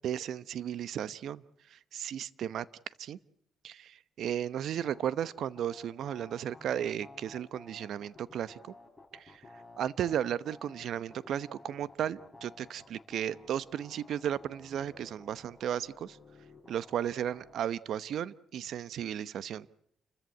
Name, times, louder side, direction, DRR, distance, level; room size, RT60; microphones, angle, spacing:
voice 1, 0.0-1.4 1.7-2.7 3.0-3.2 3.6-8.7 9.1-9.4 9.8-16.2 16.7-19.7, right 10 dB, 70° right, 17 dB, 0.8 m, -35 dB
sound 1, 4.8-17.6, left 2 dB, 10° left, 6.8 m, -54 dB
29.5 x 14.0 x 8.6 m, 0.73 s
cardioid pair, 90°, 0 cm